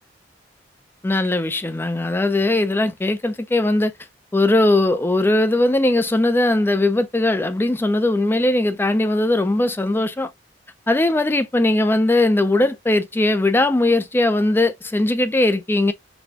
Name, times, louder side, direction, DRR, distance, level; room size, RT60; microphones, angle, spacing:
voice 1, 1.0-3.9 4.3-10.3 10.9-15.9, left 2 dB, 10° left, 0.4 m, -19 dB
4.1 x 2.2 x 2.7 m
head